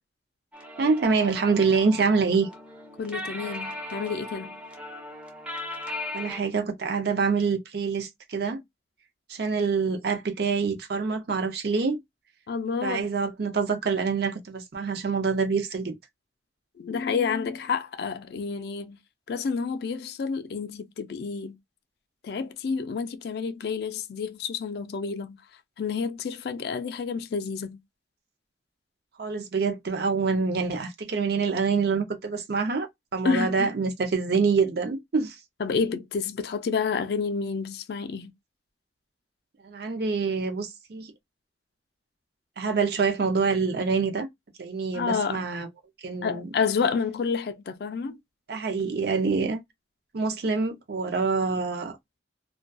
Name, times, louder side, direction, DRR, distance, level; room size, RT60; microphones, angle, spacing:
sound 1, 0.5-6.4, left 1 dB, 5° right, 0.4 m, -38 dB
voice 1, 0.8-2.5 6.1-8.6 9.3-12.0 12.8-16.0 29.2-35.4 39.6-41.1 42.6-44.3 44.6-45.7 46.0-46.5 48.5-49.6 50.1-52.0, right 5 dB, 60° right, 0.5 m, -26 dB
voice 2, 3.0-4.6 12.5-13.1 16.8-19.0 19.3-21.6 22.2-25.4 25.8-27.8 33.2-33.7 35.6-38.3 44.9-45.5 46.2-48.2, left 5 dB, 60° left, 0.3 m, -29 dB
2.2 x 2.2 x 2.5 m
head